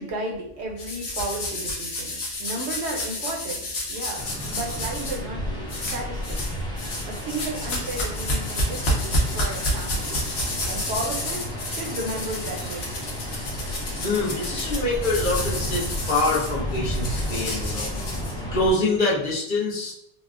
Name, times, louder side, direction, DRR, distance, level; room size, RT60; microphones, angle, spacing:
voice 1, 0.0-5.4 5.7-6.6 7.1-10.2 10.7-12.9, right 1 dB, 75° right, 0 dB, 0.9 m, -33 dB
sound 1, 0.8-5.2 5.7-6.5 6.8-18.7, left 1 dB, 85° left, 1.1 m, -30 dB
sound 2, 4.2-18.7, equal, 5° left, 0.3 m, -32 dB
voice 2, 14.0-17.9 18.5-19.9, left 2 dB, 50° left, -5 dB, 0.7 m, -25 dB
4.0 x 2.0 x 2.4 m, 0.75 s
omnidirectional pair, 1.2 m